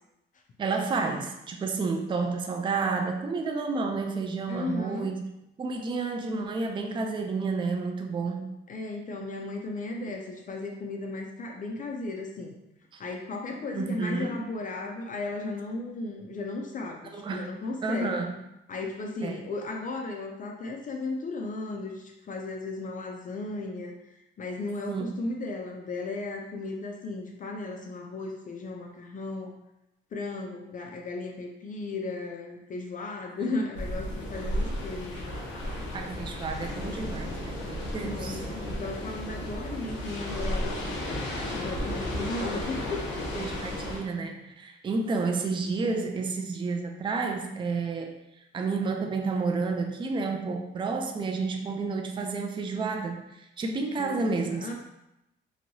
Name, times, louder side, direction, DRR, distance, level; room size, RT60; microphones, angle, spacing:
voice 1, 0.6-5.2 5.6-8.5 12.9-13.0 13.7-14.4 17.1-17.5 17.8-18.4 19.2-19.4 24.9-25.1 33.4-33.5 35.9-38.4 43.3-48.2 48.5-54.7, right 4 dB, 25° right, 3 dB, 0.4 m, -30 dB
voice 2, 4.5-5.1 8.7-12.6 13.0-18.2 18.7-29.5 30.1-35.2 38.0-41.0 41.5-43.0 43.4-43.5 54.0-54.7, left 3 dB, 40° left, 2 dB, 0.4 m, -35 dB
sound 1, 33.7-44.0, left 1 dB, 70° left, 0.9 m, -33 dB
3.0 x 2.7 x 2.6 m, 0.89 s
cardioid pair, 90°, 20 cm